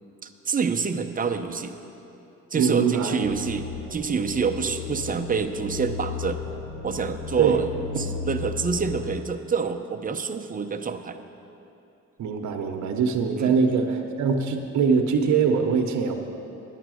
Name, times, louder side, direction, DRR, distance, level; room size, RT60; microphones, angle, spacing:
voice 1, 0.2-1.7 2.5-6.4 6.8-7.7 8.0-11.2 13.4-13.6, right 5 dB, 30° right, 5 dB, 0.7 m, -27 dB
voice 2, 2.6-3.3 7.4-7.6 12.2-16.1, right 5 dB, 70° right, 4 dB, 0.9 m, -23 dB
sound 1, 3.2-9.2, left 6 dB, 80° left, 1.5 m, -35 dB
10.0 x 9.2 x 6.3 m, 2.8 s
cardioid pair, 90°, 30 cm